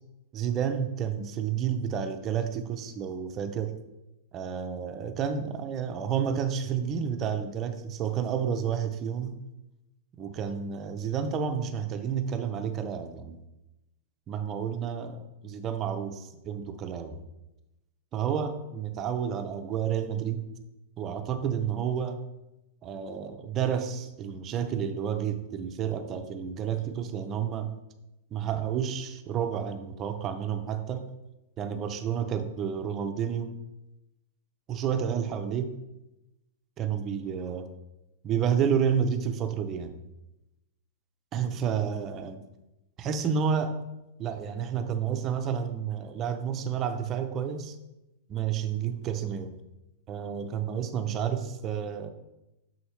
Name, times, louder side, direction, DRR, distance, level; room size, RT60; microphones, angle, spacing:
voice 1, 0.3-3.8 4.3-9.4 10.2-13.4 14.3-17.2 18.1-20.5 21.0-22.2 22.8-27.8 28.3-31.1 31.6-33.5 34.7-35.7 36.8-37.7 38.2-39.9 41.3-42.4 43.0-43.8 44.2-47.8 48.3-49.5 50.1-52.1, right 8 dB, 20° right, 7 dB, 0.5 m, -30 dB
6.6 x 6.3 x 3.1 m, 0.95 s
supercardioid pair, 175°, 0 cm